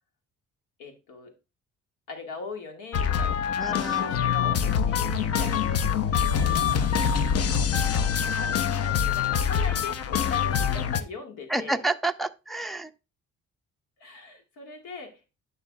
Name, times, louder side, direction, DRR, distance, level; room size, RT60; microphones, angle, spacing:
voice 1, 0.8-1.3 2.1-6.9 7.7-8.5 8.8-11.8 14.0-15.3, left 4 dB, 90° left, 1.7 m, -41 dB
sound 1, 2.9-11.0, left 7 dB, 50° left, 0.7 m, -25 dB
voice 2, 3.6-4.2 11.5-12.9, right 2 dB, ahead, 0.4 m, -29 dB
11.0 x 5.6 x 2.2 m
cardioid pair, 90°, 30 cm